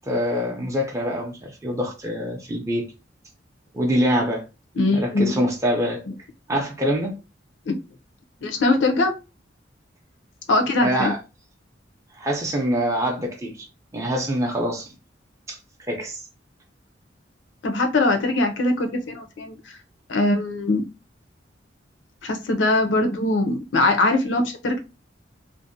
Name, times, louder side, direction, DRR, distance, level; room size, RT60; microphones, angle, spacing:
voice 1, 0.1-2.8 3.7-4.4 4.9-6.0 6.5-7.1 10.8-11.2 12.2-13.6 13.9-14.9 15.5-15.6 15.9-16.2, equal, 15° right, 0.5 m, -24 dB
voice 2, 4.8-5.4 7.7-7.8 8.4-9.1 10.5-11.1 17.6-19.8 20.1-20.8 22.2-24.8, left 2 dB, 85° left, 0.6 m, -21 dB
2.6 x 2.1 x 2.6 m
head